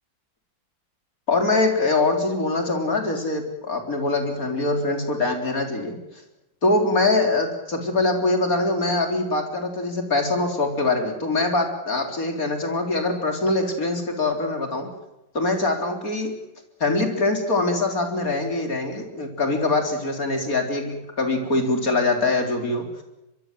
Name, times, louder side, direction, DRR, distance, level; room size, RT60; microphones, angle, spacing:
voice 1, 1.3-6.0 6.6-14.9 15.3-16.3 16.8-23.0, left 2 dB, 45° left, 4 dB, 4.4 m, -23 dB
25.5 x 23.0 x 7.7 m, 0.92 s
omnidirectional pair, 2.0 m